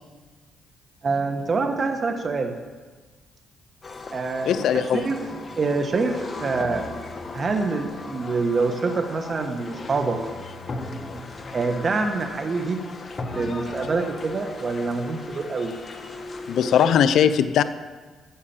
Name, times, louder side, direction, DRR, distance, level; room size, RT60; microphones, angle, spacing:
voice 1, 1.0-2.6 4.1-5.2 5.6-6.9 7.3-10.2 11.1-11.3 11.5-12.8 13.4-15.7, right 4 dB, 40° right, 6 dB, 1.2 m, -26 dB
sound 1, 3.8-17.0, left 3 dB, 35° left, 1.4 m, -37 dB
voice 2, 4.5-5.0 16.5-17.6, left 9 dB, 75° left, 12 dB, 0.6 m, -19 dB
11.5 x 8.3 x 7.3 m, 1.3 s
cardioid pair, 90°, 0 cm